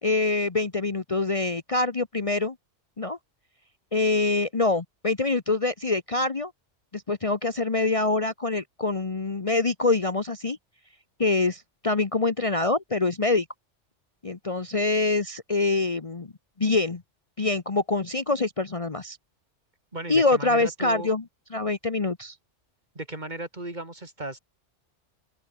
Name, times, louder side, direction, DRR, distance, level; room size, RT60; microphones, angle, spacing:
voice 1, 0.0-2.5 3.0-3.2 3.9-6.5 6.9-10.6 11.2-13.4 14.2-16.3 16.6-17.0 17.4-19.2 20.1-21.2 21.5-22.3, left 3 dB, 30° left, 1.0 m, -25 dB
voice 2, 19.9-21.1 23.0-24.4, right 2 dB, 40° right, 3.5 m, -36 dB
open air
omnidirectional pair, 1.2 m